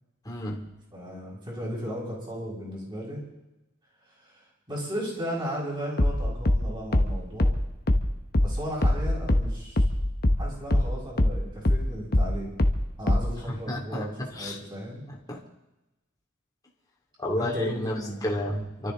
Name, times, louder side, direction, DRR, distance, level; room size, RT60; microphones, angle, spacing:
voice 1, 0.2-0.6 13.5-14.6 15.3-15.4 17.2-18.9, left 1 dB, 20° left, -2 dB, 2.7 m, -31 dB
voice 2, 0.9-3.2 4.2-7.5 8.4-9.8 10.4-12.5 13.0-15.0 17.4-18.3, equal, 25° right, -4 dB, 6.7 m, -35 dB
sound 1, 6.0-10.9 11.2-13.4, left 1 dB, 50° left, 1.2 m, -23 dB
28.0 x 13.5 x 3.8 m, 1.0 s
head